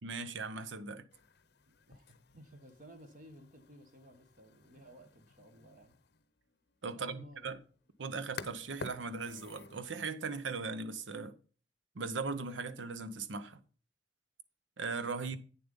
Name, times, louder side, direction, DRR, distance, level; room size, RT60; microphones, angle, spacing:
voice 1, 0.0-1.0 6.8-7.6 8.0-11.3 11.9-13.6 14.8-15.4, right 4 dB, 90° right, 0.8 m, -38 dB
sound 1, 1.1-9.8, left 4 dB, 60° left, 0.7 m, -52 dB
voice 2, 1.7-5.9 7.0-7.6, equal, 45° right, 1.2 m, -56 dB
8.6 x 7.1 x 5.3 m
head